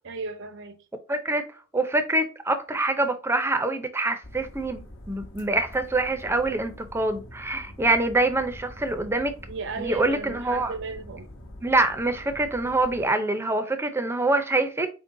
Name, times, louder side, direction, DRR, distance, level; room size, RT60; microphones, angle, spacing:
voice 1, 0.0-0.8 9.5-11.3, right 4 dB, 60° right, 0.6 m, -34 dB
voice 2, 1.1-1.4 1.7-9.3 9.8-10.7 11.6-14.9, right 2 dB, 10° right, 0.5 m, -25 dB
sound 1, 4.2-13.1, left 1 dB, 65° left, 1.0 m, -45 dB
4.4 x 3.8 x 2.6 m
head